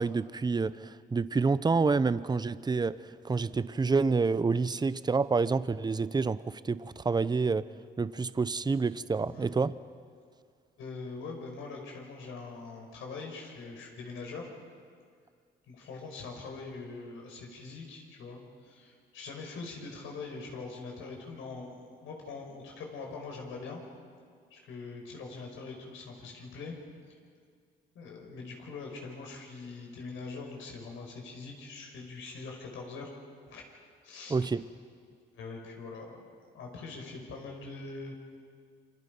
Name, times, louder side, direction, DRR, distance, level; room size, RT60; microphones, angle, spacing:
voice 1, 0.0-7.7 8.0-9.7 34.3-34.7, right 4 dB, 20° right, 16 dB, 0.7 m, -28 dB
voice 2, 9.2-9.5 10.8-14.5 15.7-23.8 24.5-26.7 27.9-33.1 33.5-33.6 34.0-34.4 35.3-38.1, left 4 dB, 80° left, 1 dB, 5.3 m, -43 dB
28.0 x 24.5 x 5.4 m, 2.1 s
cardioid pair, 90°, 20 cm